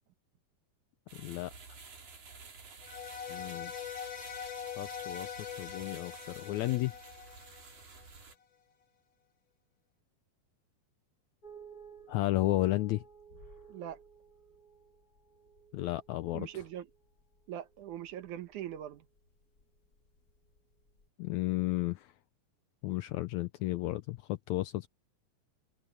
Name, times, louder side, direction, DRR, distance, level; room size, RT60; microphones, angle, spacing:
voice 1, 1.1-1.5 3.3-3.7 4.8-6.9 12.1-13.0 15.7-16.5 21.2-22.1 22.8-24.9, left 17 dB, 80° left, 1.7 m, -33 dB
sound 1, 1.1-8.4, right 4 dB, 85° right, 7.0 m, -52 dB
sound 2, 2.8-8.0, left 8 dB, 55° left, 3.2 m, -43 dB
sound 3, 11.4-21.1, right 5 dB, 30° left, 2.1 m, -57 dB
voice 2, 13.7-14.0 16.3-16.9 17.5-19.1, right 11 dB, 70° right, 2.5 m, -41 dB
open air
omnidirectional pair, 3.8 m